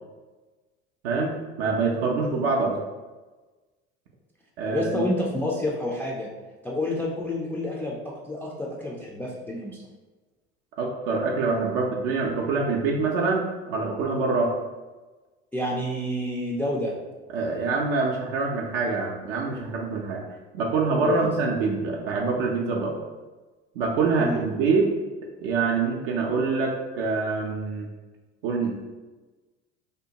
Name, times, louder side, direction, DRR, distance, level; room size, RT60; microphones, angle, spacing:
voice 1, 1.6-2.8 4.6-5.0 10.8-14.5 17.3-20.2 20.5-22.9 23.8-24.9 25.4-27.9 28.4-28.8, right 4 dB, 65° right, -1 dB, 0.5 m, -25 dB
voice 2, 4.7-6.3 6.6-9.8 15.5-16.9 21.0-21.3 24.2-24.4, left 1 dB, 5° left, -4 dB, 0.3 m, -29 dB
2.7 x 2.1 x 2.8 m, 1.2 s
hypercardioid pair, 65°, 31 cm